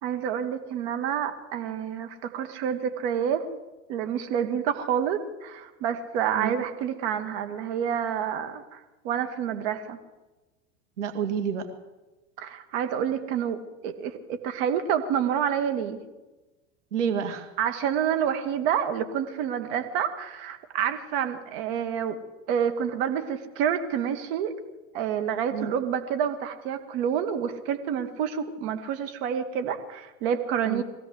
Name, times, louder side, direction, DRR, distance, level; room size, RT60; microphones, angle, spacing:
voice 1, 0.0-3.4 3.9-10.0 12.4-16.0 17.6-22.2 22.5-24.5 24.9-30.8, right 8 dB, 60° right, 7 dB, 2.4 m, -28 dB
voice 2, 11.0-11.7 16.9-17.5 25.5-25.7 30.7-30.8, right 7 dB, 80° right, 7 dB, 2.3 m, -29 dB
23.0 x 16.0 x 8.0 m, 1.1 s
hypercardioid pair, 90°, 36 cm